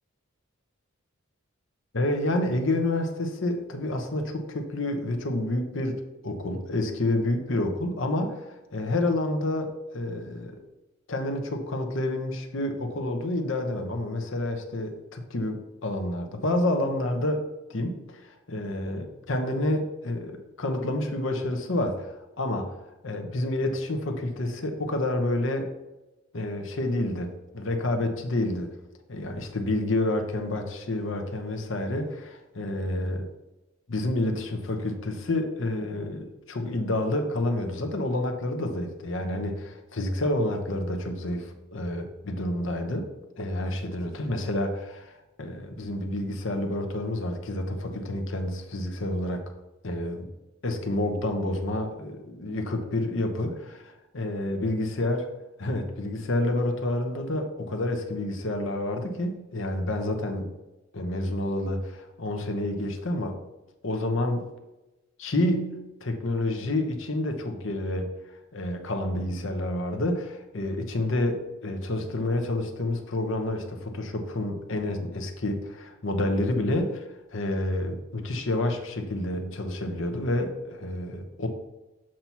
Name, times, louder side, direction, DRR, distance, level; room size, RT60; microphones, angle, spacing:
voice 1, 1.9-6.0 6.2-10.6 11.1-17.4 17.7-22.7 23.0-25.7 26.3-28.7 29.1-33.3 33.9-43.1 43.4-45.1 45.4-49.4 49.8-50.3 50.6-55.3 55.6-60.5 60.9-63.4 63.8-64.4 65.2-68.2 68.5-81.5, left 1 dB, 65° left, 5 dB, 0.9 m, -29 dB
7.5 x 2.9 x 5.6 m, 1.0 s
head